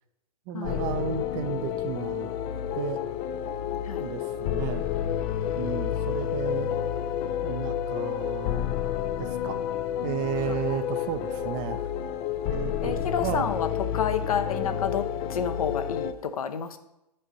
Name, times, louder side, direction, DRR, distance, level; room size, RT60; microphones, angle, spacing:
voice 1, 0.5-2.3 2.7-3.0 4.0-4.8 5.6-6.7 7.4-8.6 9.2-9.6 10.0-11.9 12.5-13.6, right 9 dB, 30° right, 10 dB, 0.6 m, -33 dB
sound 1, 0.6-16.1, left 9 dB, 25° left, 0.4 m, -30 dB
voice 2, 12.8-16.8, left 7 dB, 60° left, 9 dB, 0.9 m, -30 dB
9.8 x 5.4 x 4.2 m, 0.88 s
figure-of-eight pair, 120°, 21 cm